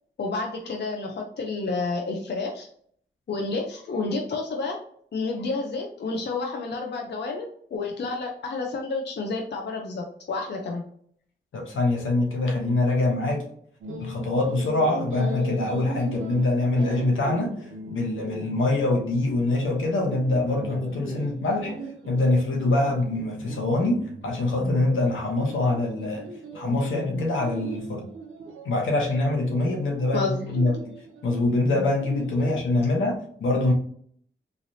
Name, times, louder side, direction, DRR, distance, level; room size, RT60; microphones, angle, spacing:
voice 1, 0.2-2.7 3.3-4.8 5.1-10.8 30.1-30.4, left 3 dB, 60° left, 1 dB, 0.6 m, -30 dB
voice 2, 11.5-13.4 14.0-17.5 17.9-21.8 22.1-26.3 26.5-28.1 28.6-30.7 31.2-33.7, left 2 dB, 80° left, 1 dB, 0.9 m, -24 dB
sound 1, 13.8-32.6, right 2 dB, 90° right, 0.6 m, -39 dB
3.2 x 2.5 x 2.7 m, 0.62 s
cardioid pair, 50°, 20 cm